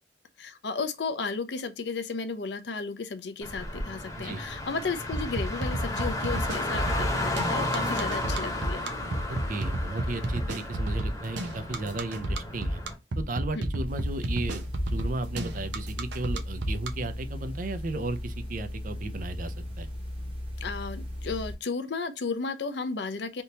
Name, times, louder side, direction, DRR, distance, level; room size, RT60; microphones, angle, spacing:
voice 1, 0.4-8.8 13.5-13.6 20.6-23.4, left 4 dB, 70° left, 0.6 m, -34 dB
Car, 3.4-12.9, left 1 dB, 20° left, 1.0 m, -33 dB
sound 1, 5.1-16.9, right 1 dB, 85° right, 0.7 m, -30 dB
voice 2, 9.3-12.8 13.2-19.9, right 2 dB, 50° right, 0.5 m, -35 dB
sound 2, 13.8-21.5, left 1 dB, 30° right, 1.2 m, -37 dB
3.5 x 2.8 x 2.8 m
head